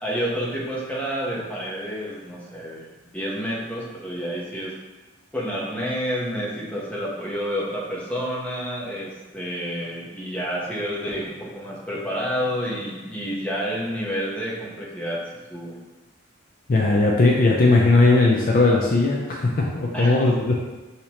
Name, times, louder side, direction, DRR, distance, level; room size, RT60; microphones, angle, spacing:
voice 1, 0.0-2.9 3.1-4.7 5.3-15.2 15.5-15.8 19.9-20.2, equal, 5° left, -6 dB, 0.8 m, -29 dB
voice 2, 16.7-20.5, left 2 dB, 40° left, -2 dB, 0.4 m, -18 dB
6.4 x 2.8 x 2.9 m, 1.2 s
head